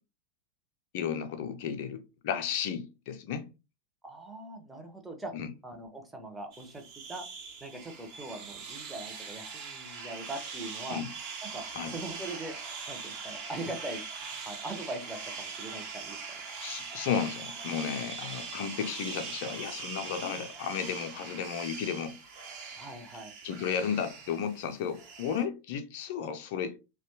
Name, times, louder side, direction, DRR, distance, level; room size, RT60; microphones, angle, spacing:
voice 1, 0.9-3.5 5.3-5.5 10.9-11.1 11.7-11.9 16.6-22.2 23.4-26.8, left 7 dB, 50° left, 0.4 m, -33 dB
voice 2, 4.0-5.3 5.6-6.8 7.1-7.2 7.6-11.0 11.4-12.6 12.9-14.0 14.5-16.2 22.8-23.3, right 2 dB, 5° right, 0.6 m, -41 dB
sound 1, 6.5-25.4, right 5 dB, 40° right, 0.7 m, -42 dB
2.8 x 2.2 x 2.8 m
figure-of-eight pair, 90°, 0 cm